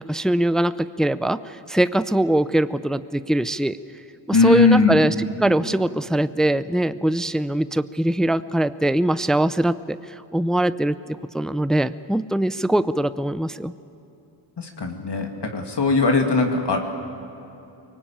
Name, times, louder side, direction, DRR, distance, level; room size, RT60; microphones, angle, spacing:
voice 1, 0.0-3.8 4.3-10.0 10.3-13.7, right 1 dB, ahead, 14 dB, 0.5 m, -22 dB
voice 2, 4.3-5.0 14.6-16.8, left 4 dB, 60° left, 3 dB, 2.5 m, -19 dB
23.5 x 19.0 x 8.7 m, 3.0 s
cardioid pair, 75°, 46 cm